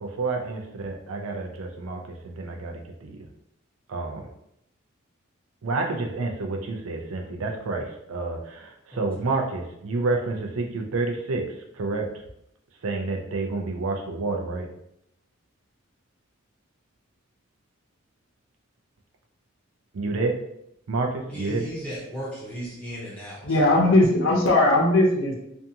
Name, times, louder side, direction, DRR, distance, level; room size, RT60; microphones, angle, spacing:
voice 1, 0.0-3.2 3.9-4.3 5.6-11.4 11.7-12.1 12.8-14.7 19.9-20.3 20.9-21.7, right 3 dB, 85° right, 2 dB, 0.5 m, -29 dB
voice 2, 8.9-9.3 21.3-23.7, equal, 5° left, -8 dB, 0.6 m, -36 dB
voice 3, 23.4-25.4, left 1 dB, 70° left, -1 dB, 0.6 m, -19 dB
2.5 x 2.3 x 2.7 m, 0.79 s
head